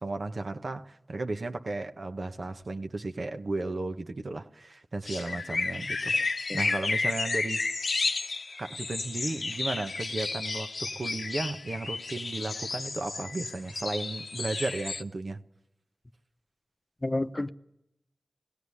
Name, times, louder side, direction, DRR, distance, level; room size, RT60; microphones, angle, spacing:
voice 1, 0.0-7.6 8.6-15.4, right 2 dB, 70° right, 1.1 m, -34 dB
sound 1, 5.1-15.0, left 3 dB, 85° left, 0.9 m, -32 dB
voice 2, 6.5-6.8 17.0-17.5, left 2 dB, 30° left, 0.8 m, -31 dB
20.5 x 17.0 x 9.8 m
wide cardioid pair, 50°, 0 cm